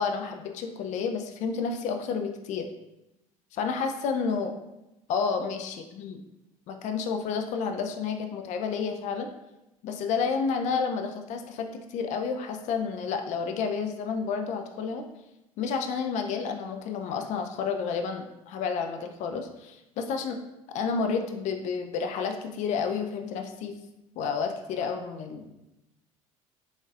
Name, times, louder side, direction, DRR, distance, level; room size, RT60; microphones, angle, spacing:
voice 1, 0.0-2.7 3.5-4.5 5.1-6.1 6.7-9.3 9.8-15.1 15.6-20.4 20.7-23.7 24.2-25.6, left 5 dB, 45° left, 5 dB, 0.4 m, -30 dB
3.8 x 3.4 x 2.4 m, 0.93 s
figure-of-eight pair, 60°, 17 cm